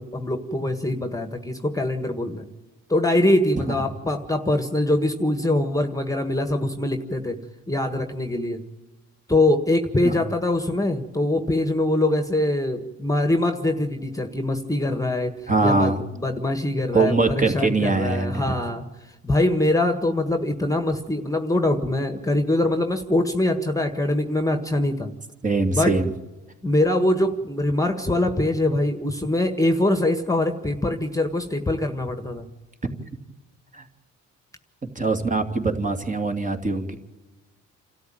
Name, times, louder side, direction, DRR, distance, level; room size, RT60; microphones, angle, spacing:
voice 1, 0.0-2.5 2.9-7.4 7.7-8.6 9.3-18.8 19.2-25.1 25.7-26.0 26.6-32.5, left 1 dB, 10° left, 8 dB, 1.6 m, -23 dB
voice 2, 15.5-16.0 16.9-18.6 25.4-26.1 33.7-33.8 34.9-37.0, right 3 dB, 25° right, 4 dB, 2.6 m, -22 dB
28.0 x 13.0 x 9.0 m, 1.1 s
cardioid pair, 90°, 30 cm